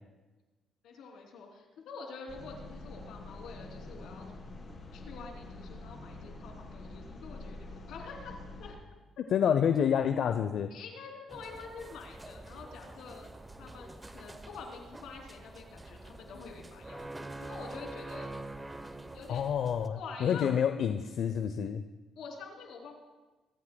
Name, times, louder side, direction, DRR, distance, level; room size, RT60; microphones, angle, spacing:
voice 1, 0.8-4.3 4.9-8.8 10.7-13.3 13.6-18.3 19.1-19.5 19.9-20.6 22.1-23.0, left 4 dB, 85° left, 0 dB, 3.1 m, -47 dB
sound 1, 2.3-8.7, left 2 dB, 40° left, 4.8 m, -46 dB
voice 2, 9.3-10.7 19.3-21.8, left 8 dB, 70° left, 9 dB, 0.6 m, -28 dB
sound 2, 11.3-19.9, right 2 dB, 15° right, 0.9 m, -46 dB
24.5 x 14.5 x 2.3 m, 1.2 s
cardioid pair, 90°, 0 cm